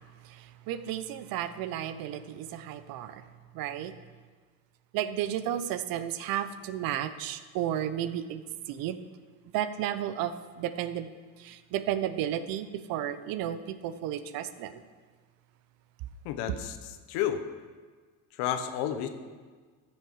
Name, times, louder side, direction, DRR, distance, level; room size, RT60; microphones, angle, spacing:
voice 1, 0.0-3.3 3.5-3.9 4.9-9.1 9.5-14.8, right 11 dB, 60° right, 12 dB, 0.7 m, -33 dB
voice 2, 16.2-16.8 17.1-17.4 18.4-19.1, left 10 dB, 75° left, 8 dB, 1.1 m, -30 dB
14.5 x 6.4 x 4.7 m, 1.5 s
cardioid pair, 130°, 39 cm